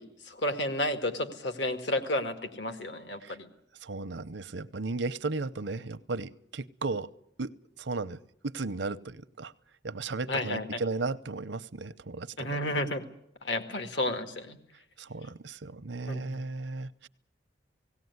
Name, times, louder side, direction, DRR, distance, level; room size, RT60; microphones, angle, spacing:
voice 1, 0.0-3.5 10.3-10.8 12.4-13.0 13.4-14.6 16.1-16.4, left 1 dB, 80° left, 8 dB, 1.9 m, -32 dB
voice 2, 3.8-7.1 7.4-9.5 9.8-12.5 15.0-17.1, right 3 dB, 75° right, 14 dB, 0.8 m, -35 dB
18.0 x 17.5 x 9.6 m, 0.71 s
head